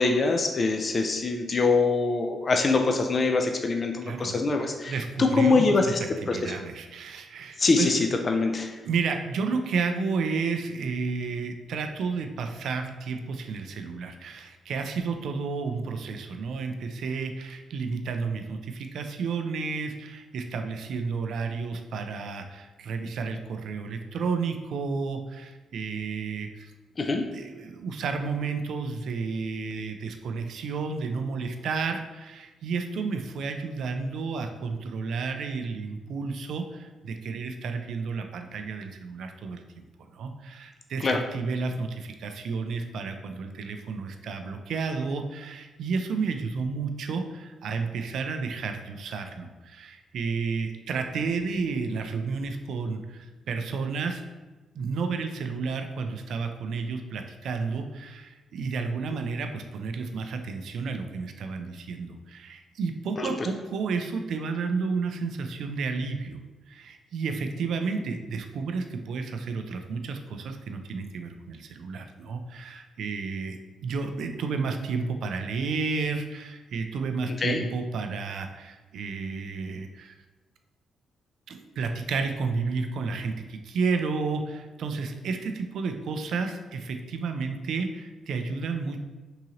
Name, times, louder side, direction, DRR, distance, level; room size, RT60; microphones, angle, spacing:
voice 1, 0.0-4.9 5.2-6.0 6.3-6.5 7.6-8.0 8.3-8.8 27.0-27.2 41.0-41.2 63.2-63.3 77.4-77.6, left 3 dB, 40° left, 4 dB, 0.3 m, -24 dB
voice 2, 4.0-4.4 4.9-5.8 6.3-7.9 8.8-26.7 27.3-39.8 40.1-54.2 54.7-66.4 66.7-80.1 81.5-89.0, right 4 dB, 75° right, 6 dB, 0.3 m, -31 dB
3.7 x 2.8 x 2.9 m, 1.2 s
cardioid pair, 95°, 0 cm